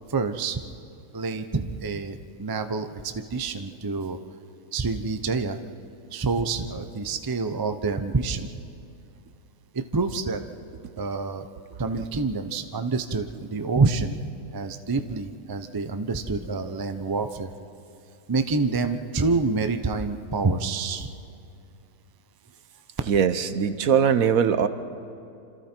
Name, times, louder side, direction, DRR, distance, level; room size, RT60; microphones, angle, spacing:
voice 1, 0.1-0.6 1.1-4.2 4.7-5.6 6.1-8.5 9.7-10.4 11.0-11.5 11.8-14.2 14.5-17.5 18.3-21.1, right 4 dB, 30° right, 8 dB, 0.4 m, -27 dB
voice 2, 23.1-24.7, right 7 dB, 60° right, 11 dB, 1.2 m, -21 dB
27.0 x 26.5 x 4.5 m, 2.6 s
omnidirectional pair, 1.8 m